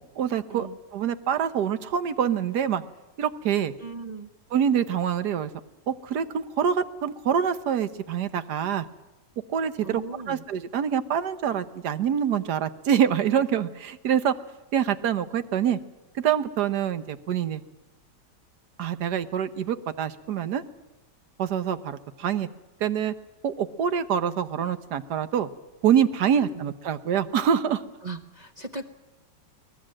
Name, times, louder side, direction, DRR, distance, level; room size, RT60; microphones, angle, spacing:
voice 1, 0.0-0.7 0.9-2.8 3.2-3.7 4.5-5.5 5.9-8.9 9.5-14.3 14.7-15.8 16.1-17.6 18.8-20.6 21.4-22.5 22.8-23.1 23.4-25.5 25.8-27.8, right 8 dB, 75° right, 11 dB, 1.5 m, -25 dB
voice 2, 3.8-4.3 9.8-10.4 26.4-26.6 28.0-28.9, right 3 dB, 35° right, 4 dB, 0.8 m, -38 dB
23.0 x 18.5 x 7.6 m, 1.1 s
omnidirectional pair, 1.8 m